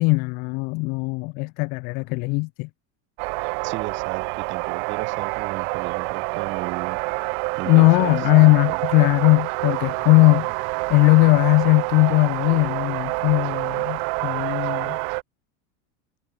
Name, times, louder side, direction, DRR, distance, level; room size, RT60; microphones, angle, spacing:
voice 1, 0.0-2.7 7.7-10.5 10.9-15.0, left 28 dB, 25° left, 0.3 m, -18 dB
sound 1, 3.2-15.2, right 37 dB, 50° right, 1.7 m, -27 dB
voice 2, 3.6-7.0 7.6-8.8, right 19 dB, 30° right, 1.4 m, -35 dB
cardioid pair, 180°, 36 cm